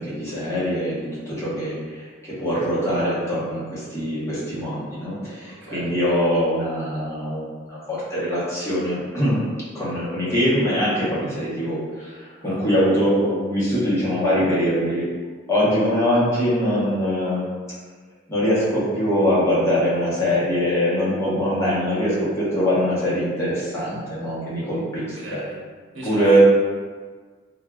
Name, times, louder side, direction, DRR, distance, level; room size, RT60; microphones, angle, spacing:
voice 1, 0.0-9.4 9.7-15.1 15.5-17.4 18.3-25.4 26.0-26.4, equal, 15° left, -10 dB, 0.9 m, -23 dB
voice 2, 5.6-5.9 12.4-12.6 25.1-25.6 25.9-26.4, equal, 65° right, -6 dB, 0.9 m, -37 dB
3.5 x 2.4 x 2.3 m, 1.5 s
head